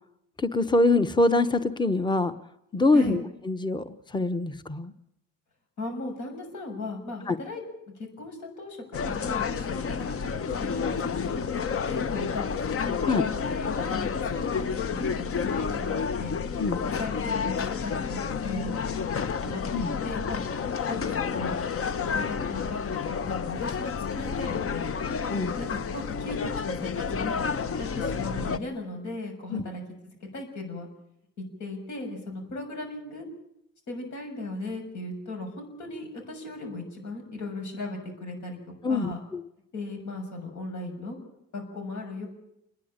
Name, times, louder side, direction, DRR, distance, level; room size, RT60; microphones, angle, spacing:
voice 1, 0.4-2.3 2.7-4.9 7.3-7.4 13.0-13.3 16.6-16.8 19.7-19.9 25.3-25.6 29.5-29.6 38.8-39.4, left 2 dB, 15° left, 12 dB, 1.0 m, -24 dB
voice 2, 5.8-7.6 8.0-13.0 13.5-16.4 17.0-19.1 19.4-20.4 20.9-21.5 22.0-25.0 25.6-27.3 27.8-30.9 31.6-33.2 33.9-38.6 38.9-39.2 39.7-41.2 41.5-42.3, left 2 dB, 70° left, 3 dB, 6.7 m, -37 dB
sound 1, 8.9-28.6, left 6 dB, 50° left, 1.0 m, -30 dB
29.0 x 10.5 x 8.7 m, 0.80 s
cardioid pair, 90°, 30 cm